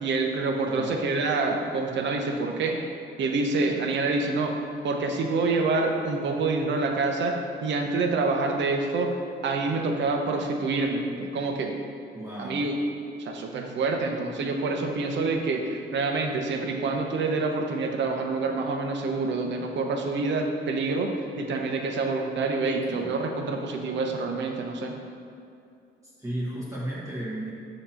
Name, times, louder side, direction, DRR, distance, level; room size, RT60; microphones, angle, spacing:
voice 1, 0.0-2.8 3.2-4.6 4.8-9.1 9.4-11.8 12.4-12.7 13.2-21.1 21.4-25.0, right 3 dB, 65° right, 3 dB, 0.7 m, -27 dB
voice 2, 0.6-1.0 12.1-12.7 22.9-23.2 26.0-27.5, right 1 dB, 15° right, -8 dB, 1.5 m, -34 dB
6.5 x 2.9 x 5.6 m, 2.5 s
cardioid pair, 90°, 20 cm